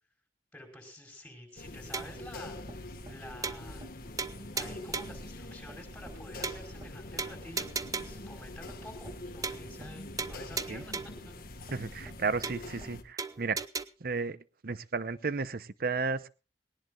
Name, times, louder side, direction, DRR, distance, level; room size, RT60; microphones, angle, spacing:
voice 1, 0.5-3.9 4.5-7.7 8.0-11.3, left 1 dB, 5° left, 2 dB, 5.3 m, -49 dB
sound 1, 1.6-13.0, left 2 dB, 55° left, 1.5 m, -44 dB
sound 2, 1.9-2.3 2.7-2.8 3.1-3.2 3.4-3.9 4.2-5.2 5.7-5.8 6.1-6.2 6.4-6.9 7.2-8.3 8.7-8.8 9.1-9.2 9.4-9.9 10.2-11.3 11.7-11.8 12.1-12.2 12.4-12.9 13.2-13.8, right 4 dB, 20° right, 0.6 m, -37 dB
voice 2, 11.7-13.6 14.0-14.4 14.6-16.3, right 4 dB, 55° right, 15 dB, 0.7 m, -33 dB
20.0 x 18.5 x 2.4 m, 0.32 s
head